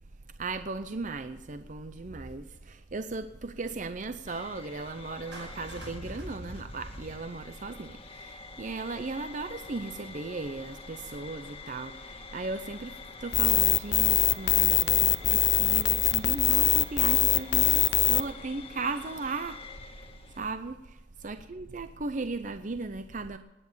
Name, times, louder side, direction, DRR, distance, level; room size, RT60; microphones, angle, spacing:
voice 1, 0.4-19.6 20.4-23.4, right 3 dB, 45° right, 10 dB, 0.6 m, -37 dB
sound 1, 4.3-20.5, left 3 dB, 30° left, 1.6 m, -46 dB
Clapping, 5.3-7.7, right 3 dB, 75° right, 5.3 m, -50 dB
sound 2, 13.3-18.2, left 13 dB, 65° left, 0.6 m, -23 dB
19.0 x 9.6 x 7.3 m, 1.1 s
head